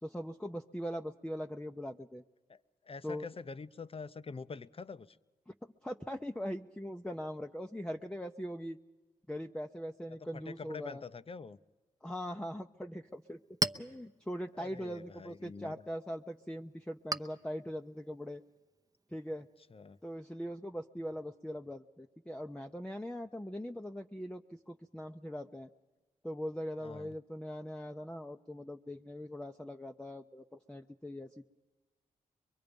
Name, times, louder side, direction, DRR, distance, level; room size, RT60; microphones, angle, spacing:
voice 1, 0.0-2.2 3.0-3.3 5.5-5.6 5.8-8.8 9.3-11.0 12.0-13.4 13.8-18.4 19.1-19.5 20.0-25.7 26.2-31.5, equal, 5° left, 0.7 m, -41 dB
voice 2, 2.5-5.2 10.3-11.6 14.5-15.8 19.7-20.0 26.8-27.1, left 4 dB, 40° left, 0.7 m, -46 dB
Chink clink, 13.0-20.2, right 2 dB, 25° right, 0.8 m, -43 dB
23.5 x 22.5 x 5.3 m
supercardioid pair, 40°, 15 cm